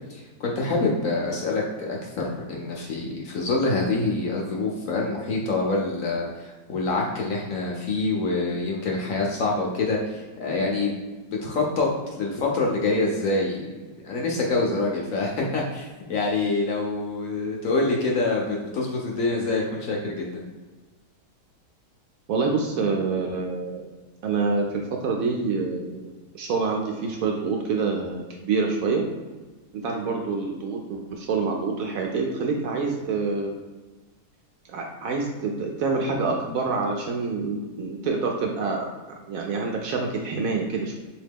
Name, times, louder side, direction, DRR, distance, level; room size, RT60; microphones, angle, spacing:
voice 1, 0.0-10.9 11.4-13.6 14.0-20.4, left 3 dB, 65° left, -1 dB, 0.9 m, -26 dB
voice 2, 22.3-23.8 24.2-29.0 29.7-33.6 34.7-38.9 39.3-41.0, right 4 dB, 70° right, 1 dB, 0.9 m, -27 dB
3.7 x 2.8 x 3.5 m, 1.3 s
omnidirectional pair, 1.8 m